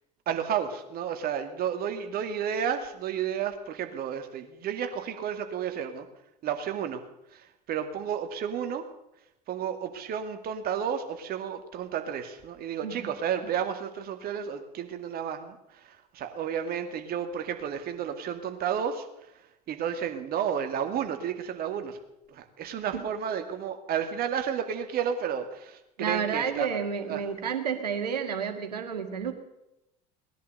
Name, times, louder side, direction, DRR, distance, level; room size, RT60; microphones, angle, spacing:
voice 1, 0.3-6.1 6.4-7.0 7.3-8.9 9.5-19.3 19.7-22.0 22.3-26.8 27.1-27.3, right 8 dB, 50° right, 7 dB, 2.2 m, -32 dB
voice 2, 26.0-29.3, right 7 dB, 85° right, 6 dB, 2.0 m, -30 dB
19.0 x 11.0 x 6.7 m, 0.89 s
hypercardioid pair, 70°, 20 cm